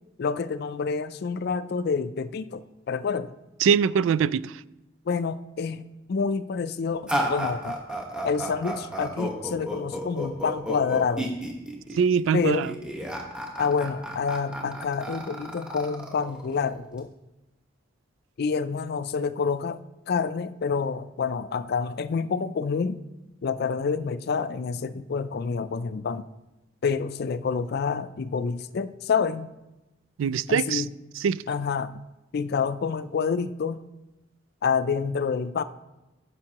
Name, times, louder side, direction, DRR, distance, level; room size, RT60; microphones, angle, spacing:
voice 1, 0.2-3.3 5.1-7.8 8.2-11.4 12.3-12.7 13.6-17.1 18.4-19.8 20.1-23.0 23.4-26.3 26.8-29.5 30.5-30.9 31.5-32.0 32.3-33.8 34.6-35.6, left 5 dB, 55° left, 0.4 m, -28 dB
voice 2, 3.6-4.6 11.9-12.7 30.2-30.8 31.2-31.4, right 7 dB, 75° right, 0.3 m, -23 dB
sound 1, 7.1-17.0, right 1 dB, 5° right, 1.2 m, -32 dB
15.0 x 6.7 x 2.9 m
head